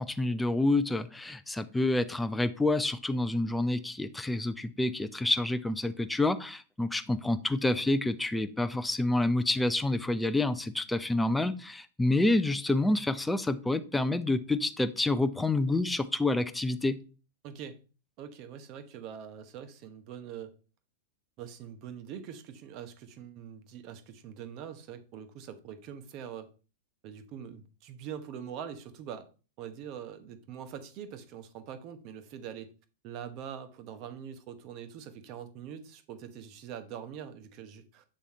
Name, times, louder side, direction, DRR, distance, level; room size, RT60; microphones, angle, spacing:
voice 1, 0.0-17.0, left 2 dB, 5° left, 0.5 m, -28 dB
voice 2, 17.4-17.8 18.2-20.5 21.4-26.5 27.0-29.3 29.6-32.7 33.0-38.0, right 8 dB, 45° right, 1.0 m, -43 dB
7.6 x 3.5 x 4.2 m
hypercardioid pair, 130°, 0 cm